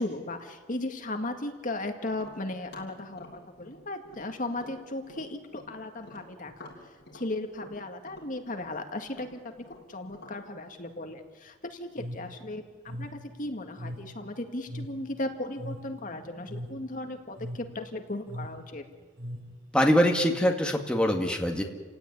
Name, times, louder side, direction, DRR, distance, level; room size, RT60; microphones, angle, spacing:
voice 1, 0.0-6.5 7.1-9.4 9.9-18.8, left 2 dB, 45° left, 5 dB, 1.9 m, -36 dB
Tap, 2.1-5.7 6.0-10.4, left 1 dB, 60° left, 7.4 m, -50 dB
sound 1, 11.9-19.8, equal, 70° right, 5.1 m, -41 dB
voice 2, 19.7-21.6, equal, 5° left, 2 dB, 2.1 m, -23 dB
30.0 x 17.0 x 9.8 m, 1.4 s
head